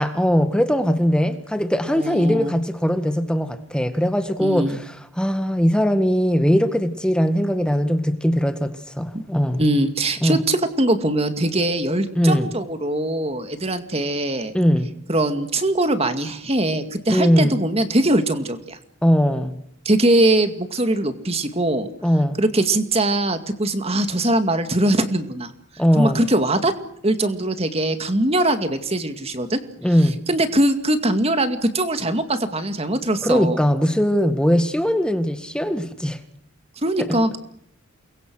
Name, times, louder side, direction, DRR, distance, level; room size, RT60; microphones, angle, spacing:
voice 1, 0.0-9.6 10.2-10.4 12.2-12.5 14.5-14.9 17.1-17.6 19.0-19.6 22.0-22.4 25.8-26.2 29.8-30.2 33.2-36.2 37.0-37.2, equal, 5° left, 1.7 m, -20 dB
voice 2, 1.9-2.6 4.4-4.8 9.1-9.2 9.6-14.5 15.1-18.8 19.9-21.9 22.4-25.5 26.0-26.7 27.0-29.6 30.3-33.6 36.8-37.4, right 1 dB, 30° right, 2.3 m, -21 dB
29.0 x 23.0 x 6.4 m
head